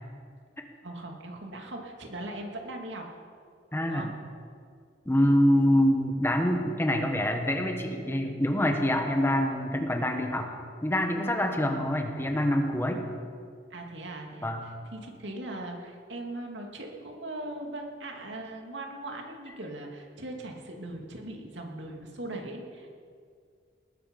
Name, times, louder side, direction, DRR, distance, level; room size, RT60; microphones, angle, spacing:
voice 1, 0.8-3.0 3.8-4.1 13.7-23.0, right 1 dB, 90° right, 2 dB, 2.5 m, -40 dB
voice 2, 3.7-4.1 5.0-10.5 10.8-13.0 14.4-14.6, equal, 15° left, 4 dB, 1.4 m, -25 dB
19.5 x 13.5 x 5.4 m, 2.2 s
head